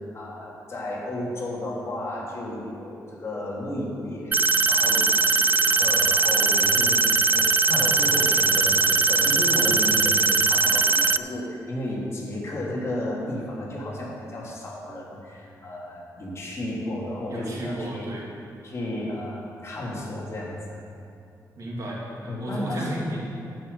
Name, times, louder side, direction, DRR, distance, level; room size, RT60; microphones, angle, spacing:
voice 1, 0.1-18.1 18.6-20.6 22.3-22.9, left 1 dB, 40° left, -5 dB, 3.0 m, -33 dB
sound 1, 4.3-11.2, right 3 dB, 25° right, 0.3 m, -20 dB
voice 2, 17.3-18.3 21.6-23.2, right 1 dB, 55° right, -4 dB, 3.0 m, -33 dB
12.0 x 6.1 x 8.5 m, 2.6 s
cardioid pair, 110°, 7 cm